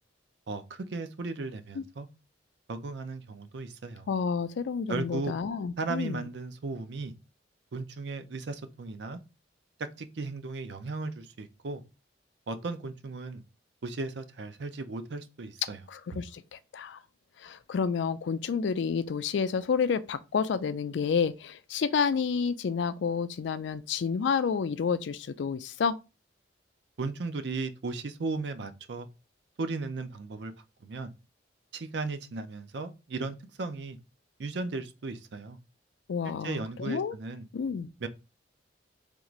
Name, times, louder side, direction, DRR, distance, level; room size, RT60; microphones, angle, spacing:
voice 1, 0.5-2.1 2.7-4.1 4.9-5.3 5.8-7.1 7.7-9.2 10.0-11.8 12.5-13.4 13.8-15.8 16.1-16.2 27.0-29.1 29.6-30.5 30.8-31.1 31.7-34.0 34.4-35.6 36.2-37.5 38.0-38.1, right 3 dB, 65° right, 0.5 m, -36 dB
voice 2, 4.1-6.3 15.9-17.0 17.4-26.0 36.1-37.1 37.5-37.9, left 6 dB, 75° left, 0.4 m, -30 dB
3.6 x 2.5 x 3.0 m
head